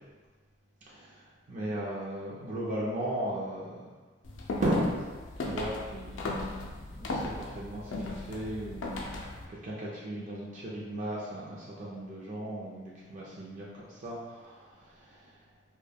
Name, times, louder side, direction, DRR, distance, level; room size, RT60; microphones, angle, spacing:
voice 1, 0.9-1.2 1.5-3.9 4.6-4.9 5.1-15.3, right 1 dB, 40° right, -6 dB, 0.4 m, -36 dB
sound 1, 4.2-9.5, left 2 dB, 70° left, 0.4 m, -37 dB
2.2 x 2.1 x 3.3 m, 1.4 s
head